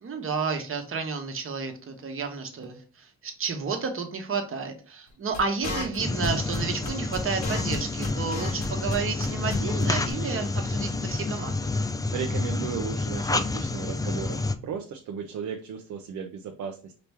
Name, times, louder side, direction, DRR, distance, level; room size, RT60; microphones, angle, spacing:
voice 1, 0.0-11.7, right 5 dB, 45° right, 5 dB, 1.2 m, -31 dB
sound 1, 5.3-9.0 9.2-9.6 9.8-9.9 10.1-10.2, left 3 dB, 70° left, 1.6 m, -34 dB
sound 2, 6.0-14.5, left 3 dB, 10° left, 0.4 m, -29 dB
voice 2, 12.1-16.9, right 7 dB, 70° right, 3 dB, 0.7 m, -35 dB
5.0 x 3.0 x 3.4 m, 0.38 s
cardioid pair, 90°, 30 cm